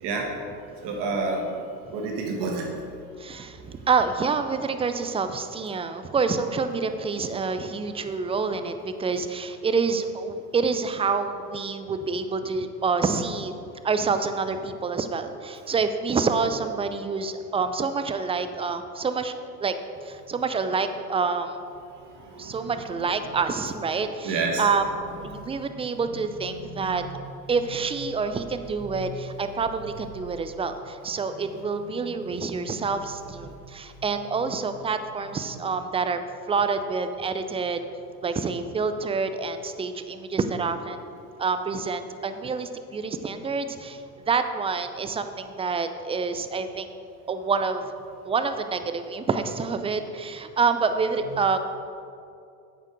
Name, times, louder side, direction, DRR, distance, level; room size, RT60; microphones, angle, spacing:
voice 1, 0.8-1.4 1.9-2.7 22.1-22.7 24.2-24.7 26.5-27.0 28.9-29.0 32.2-32.7, right 3 dB, 55° right, 0 dB, 2.0 m, -30 dB
voice 2, 3.2-13.5 13.8-19.3 19.6-19.7 20.0-21.6 22.4-24.9 25.2-27.0 27.5-36.2 36.5-37.8 38.2-41.0 41.4-44.0 44.3-46.9 47.3-47.9 48.2-51.6, right 4 dB, 15° right, 9 dB, 0.4 m, -27 dB
8.8 x 6.8 x 5.0 m, 2.5 s
hypercardioid pair, 80°, 48 cm